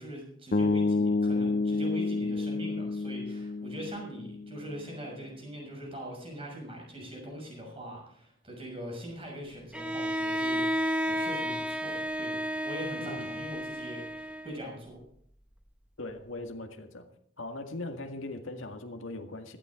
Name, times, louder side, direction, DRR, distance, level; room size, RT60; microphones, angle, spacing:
voice 1, 0.0-15.0, equal, 30° right, 0 dB, 6.4 m, -42 dB
sound 1, 0.5-4.7, left 3 dB, 45° left, 0.6 m, -29 dB
Bowed string instrument, 9.7-14.8, equal, 5° right, 0.9 m, -32 dB
voice 2, 16.0-17.1 17.4-19.6, left 2 dB, 85° left, 4 dB, 1.9 m, -39 dB
17.0 x 13.5 x 3.7 m, 0.65 s
head